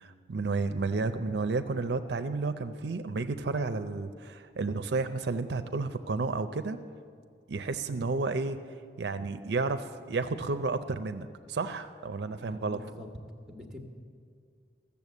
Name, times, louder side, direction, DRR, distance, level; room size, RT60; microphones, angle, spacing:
voice 1, 0.0-6.8 7.5-8.6 9.0-12.8, right 3 dB, 70° right, 9 dB, 0.5 m, -31 dB
voice 2, 12.4-13.1 13.5-13.8, left 1 dB, ahead, 2 dB, 1.2 m, -45 dB
14.0 x 7.0 x 8.3 m, 2.3 s
head